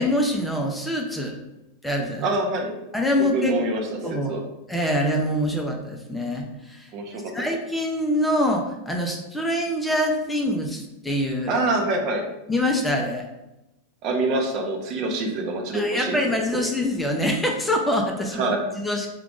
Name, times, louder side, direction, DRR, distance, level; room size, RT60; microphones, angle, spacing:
voice 1, 0.0-1.4 1.8-2.3 2.9-3.6 4.0-4.4 4.7-6.9 7.3-11.6 12.5-13.3 15.7-19.1, left 1 dB, 5° left, 1 dB, 0.6 m, -25 dB
voice 2, 2.2-2.7 3.3-4.0 4.3-4.4 6.9-7.3 11.5-12.3 14.0-16.2 16.5-16.6 18.3-18.6, right 2 dB, 45° right, 2 dB, 0.8 m, -25 dB
4.7 x 2.4 x 3.6 m, 0.94 s
figure-of-eight pair, 90°, 0 cm